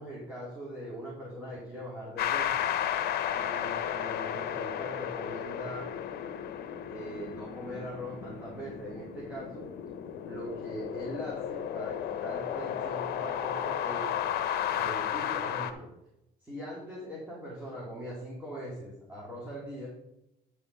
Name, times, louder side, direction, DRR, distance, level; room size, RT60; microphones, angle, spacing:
voice 1, 0.0-2.7 3.3-5.9 6.8-9.7 10.2-14.1 14.7-15.9 16.4-19.9, equal, 10° right, -6 dB, 3.2 m, -41 dB
sound 1, 2.2-15.7, left 10 dB, 70° left, 0.9 m, -33 dB
10.0 x 5.8 x 5.5 m, 0.86 s
cardioid pair, 110°, 17 cm